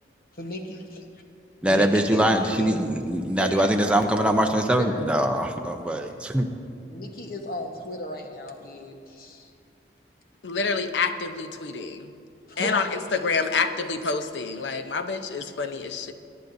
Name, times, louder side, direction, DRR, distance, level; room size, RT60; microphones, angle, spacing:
voice 1, 0.3-1.0 1.6-2.9 3.4-5.3 6.1-6.2 6.9-9.5 12.5-13.1, left 1 dB, 55° left, 3 dB, 1.2 m, -35 dB
voice 2, 1.6-6.5, right 1 dB, 5° right, 3 dB, 0.6 m, -23 dB
voice 3, 10.4-12.1 12.6-16.1, left 4 dB, 90° left, 8 dB, 0.7 m, -27 dB
22.5 x 10.5 x 2.7 m, 2.5 s
head